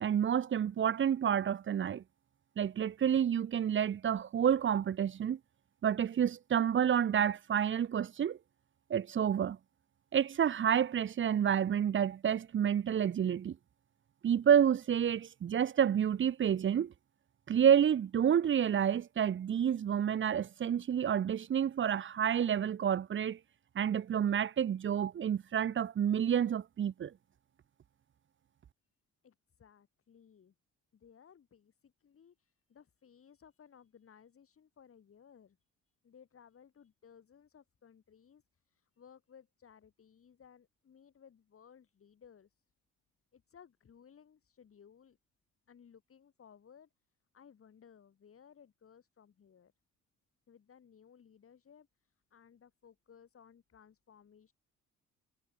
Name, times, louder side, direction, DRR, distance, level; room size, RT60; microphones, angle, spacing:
voice 1, 0.0-2.0 2.6-5.4 5.8-8.4 8.9-9.6 10.1-13.6 14.2-16.9 17.5-23.4 23.7-27.1, right 9 dB, 40° right, 0.7 m, -29 dB
voice 2, 29.2-30.5 30.9-35.6 36.0-42.5 43.3-45.2 45.7-46.9 47.3-49.7 50.5-54.5, left 7 dB, 45° left, 3.4 m, -60 dB
cardioid pair, 90°, 30 cm